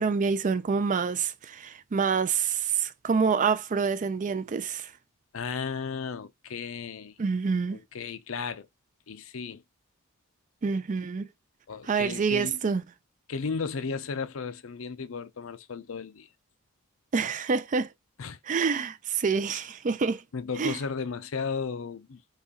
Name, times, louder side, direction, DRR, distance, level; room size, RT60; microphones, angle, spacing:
voice 1, 0.0-4.9 7.2-7.8 10.6-11.3 11.9-12.8 17.1-17.9 18.5-20.2 20.6-20.8, right 5 dB, 35° right, 0.4 m, -27 dB
voice 2, 5.3-7.1 7.7-8.7 9.1-9.6 11.7-12.6 13.3-16.3 18.2-18.4 20.3-22.2, left 5 dB, 65° left, 0.6 m, -34 dB
4.1 x 3.1 x 3.7 m
head